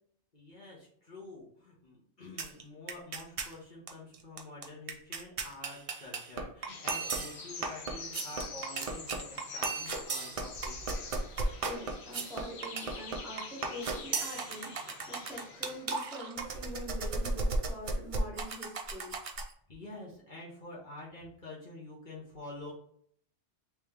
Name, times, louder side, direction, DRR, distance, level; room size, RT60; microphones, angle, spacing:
voice 1, 0.3-11.1 19.7-22.7, left 2 dB, 45° left, -5 dB, 1.1 m, -48 dB
sound 1, 2.4-2.6 2.9-3.5 3.9-4.0 4.1-19.5, right 3 dB, 45° right, 0.4 m, -35 dB
sound 2, 6.7-15.9, left 4 dB, 70° left, 1.0 m, -46 dB
voice 2, 11.6-19.1, equal, 5° right, -5 dB, 1.1 m, -44 dB
3.1 x 3.0 x 3.4 m, 0.65 s
omnidirectional pair, 1.1 m